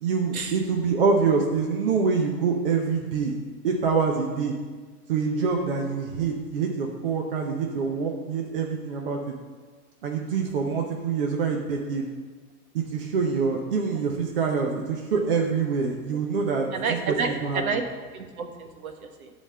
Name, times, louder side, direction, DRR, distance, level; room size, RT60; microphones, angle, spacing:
voice 1, 0.0-3.3 3.6-4.5 5.1-9.3 10.0-12.1 12.7-16.7 17.1-17.6, right 5 dB, 35° right, 1 dB, 0.8 m, -25 dB
voice 2, 16.7-17.8 18.1-19.3, right 5 dB, 60° right, 5 dB, 1.5 m, -30 dB
12.5 x 4.2 x 7.3 m, 1.4 s
hypercardioid pair, 170°, 48 cm